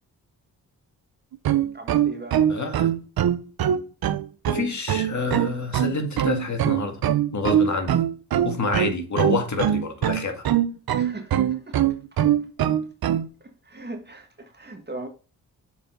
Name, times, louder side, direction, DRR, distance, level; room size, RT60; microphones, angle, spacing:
sound 1, 1.3-13.3, right 10 dB, 65° right, 0.8 m, -22 dB
voice 1, 1.7-2.4 10.9-11.8 13.4-15.1, right 2 dB, 25° right, 1.8 m, -39 dB
voice 2, 2.5-2.9 4.5-7.0 7.3-8.0 8.4-10.4, left 3 dB, 45° left, 2.1 m, -27 dB
7.1 x 4.8 x 3.8 m
cardioid pair, 55°, 39 cm